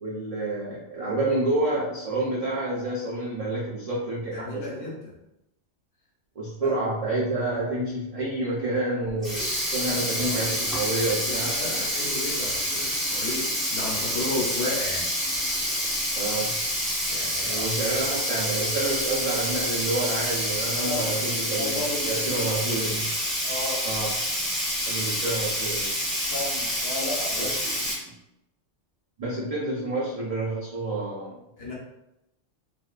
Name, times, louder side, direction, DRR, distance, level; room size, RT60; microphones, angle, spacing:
voice 1, 0.0-4.9 6.4-11.9 16.1-16.5 17.4-23.1 23.8-24.1 24.9-25.9 27.4-28.1 29.2-31.4, right 2 dB, 70° right, -6 dB, 0.3 m, -29 dB
voice 2, 4.3-5.1 6.6-6.7 9.9-10.4 11.2-13.4 13.7-15.0 17.1-17.7 20.8-21.1 21.6-22.5 23.4-23.8 26.3-27.6 31.6-31.7, left 2 dB, 60° left, -5 dB, 0.9 m, -33 dB
Sink (filling or washing), 9.1-27.9, equal, ahead, 0.5 m, -28 dB
2.4 x 2.3 x 2.2 m, 0.88 s
omnidirectional pair, 1.2 m